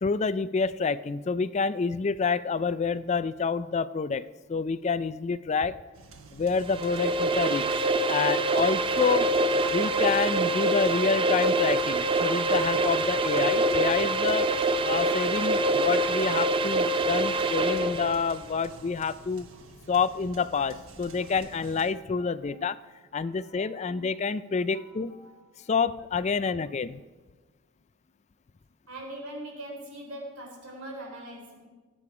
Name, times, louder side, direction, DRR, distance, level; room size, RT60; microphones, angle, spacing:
voice 1, 0.0-5.8 6.3-9.3 9.7-14.5 14.8-19.5 19.9-22.8 23.1-25.1 25.7-27.0, left 5 dB, 30° left, 16 dB, 0.3 m, -28 dB
sound 1, 5.9-21.9, right 3 dB, 70° right, 1.2 m, -49 dB
sound 2, 6.6-18.3, right 2 dB, 25° right, 0.5 m, -25 dB
voice 2, 22.3-22.7 23.2-24.0 24.6-25.7 26.3-26.6 28.9-31.7, right 1 dB, 90° right, 1 dB, 3.8 m, -43 dB
18.0 x 8.6 x 4.9 m, 1.3 s
head